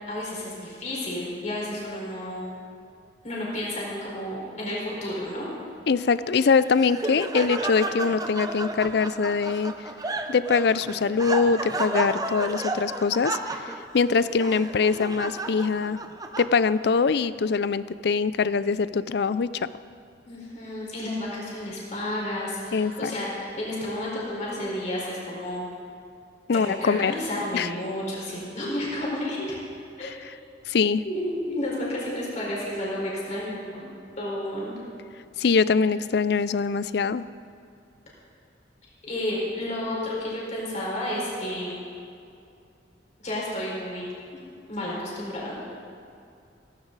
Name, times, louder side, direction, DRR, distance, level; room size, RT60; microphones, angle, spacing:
voice 1, 0.1-2.4 3.2-5.5 20.2-25.7 26.5-29.6 30.0-30.1 31.0-33.9 34.2-34.7 39.0-41.8 43.2-44.1 44.7-45.5, left 1 dB, 40° left, -5 dB, 4.7 m, -31 dB
voice 2, 5.9-9.7 10.3-13.6 13.9-16.0 16.4-19.7 22.7-23.1 26.5-27.1 27.5-27.7 30.0-30.1 30.7-31.0 35.4-37.2, left 5 dB, 65° left, 16 dB, 0.4 m, -23 dB
Laughter, 6.4-16.9, right 2 dB, 20° right, 0.7 m, -32 dB
17.5 x 15.0 x 4.0 m, 2.5 s
head